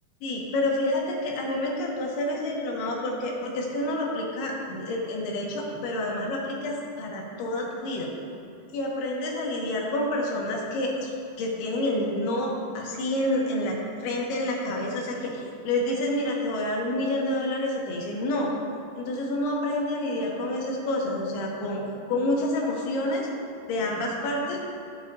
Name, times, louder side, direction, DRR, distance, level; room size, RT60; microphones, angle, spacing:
voice 1, 0.2-8.1 8.7-11.1 11.4-18.5 19.0-23.3 23.7-24.6, left 1 dB, 70° left, -2 dB, 2.8 m, -28 dB
13.0 x 7.0 x 2.7 m, 2.5 s
omnidirectional pair, 5.1 m